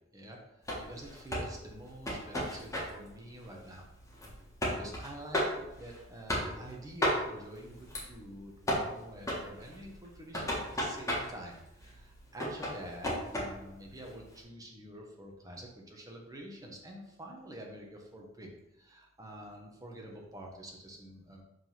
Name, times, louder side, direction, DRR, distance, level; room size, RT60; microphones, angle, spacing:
voice 1, 0.1-3.9 4.7-21.4, right 1 dB, 20° right, 0 dB, 1.2 m, -48 dB
sound 1, 0.6-14.4, equal, 15° left, 1.6 m, -36 dB
5.3 x 3.7 x 5.8 m, 0.89 s
head